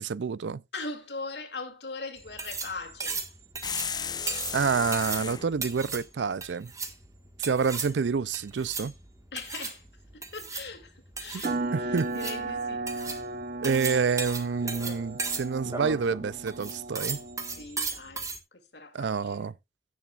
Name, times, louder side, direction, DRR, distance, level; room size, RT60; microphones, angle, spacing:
voice 1, 0.0-0.6 4.5-6.7 7.4-8.9 11.7-12.1 13.6-17.2 18.9-19.5, right 5 dB, 85° right, 0.5 m, -28 dB
voice 2, 0.7-3.2 9.3-9.8 10.1-10.9 11.2-12.9 17.6-18.3 18.5-19.5, left 3 dB, 70° left, 2.5 m, -40 dB
sound 1, 2.2-18.4, right 4 dB, 20° right, 1.6 m, -37 dB
sound 2, 3.6-5.5, left 7 dB, 25° left, 0.7 m, -34 dB
sound 3, 11.4-17.6, right 2 dB, 50° right, 0.9 m, -35 dB
16.5 x 7.2 x 2.4 m
head